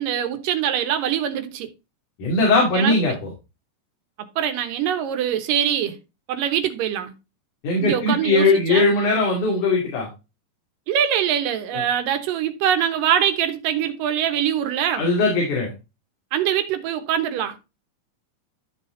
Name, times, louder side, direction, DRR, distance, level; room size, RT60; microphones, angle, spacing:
voice 1, 0.0-1.7 2.7-3.0 4.4-6.0 6.3-7.1 7.8-8.9 10.9-15.1 16.3-17.6, right 9 dB, 90° right, 2.8 m, -23 dB
voice 2, 2.2-3.1 7.6-10.1 15.0-15.7, left 2 dB, 65° left, 4.0 m, -19 dB
13.0 x 4.3 x 3.8 m
omnidirectional pair, 3.8 m